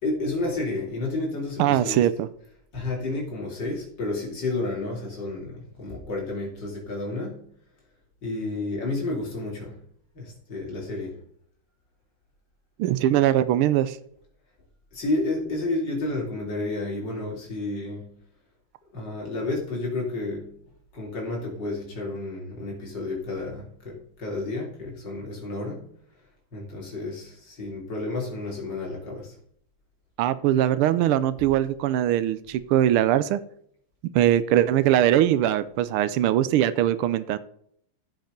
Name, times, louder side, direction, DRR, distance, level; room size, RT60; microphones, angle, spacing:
voice 1, 0.0-2.1 2.7-7.5 8.2-9.8 10.1-11.2 14.9-18.1 18.9-20.5 20.9-25.9 26.5-29.4, left 2 dB, 55° left, 3.8 m, -31 dB
voice 2, 1.6-2.3 12.8-14.0 30.2-33.4 34.1-37.4, right 12 dB, 85° right, 1.5 m, -21 dB
15.0 x 5.4 x 5.2 m
omnidirectional pair, 2.3 m